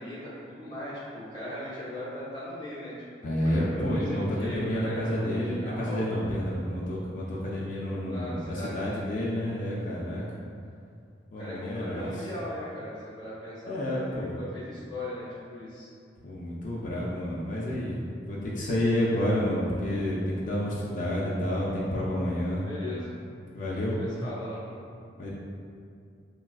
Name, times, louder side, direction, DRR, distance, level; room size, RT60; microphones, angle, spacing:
voice 1, 0.0-3.3 3.6-6.1 8.1-9.2 11.4-15.9 22.5-23.2 24.0-24.9, left 1 dB, 25° left, -10 dB, 1.0 m, -39 dB
voice 2, 3.2-10.2 11.3-12.1 13.6-14.3 16.2-22.7 23.5-24.0 25.2-25.3, left 1 dB, 45° left, -6 dB, 0.4 m, -29 dB
3.5 x 2.3 x 2.3 m, 2.4 s
head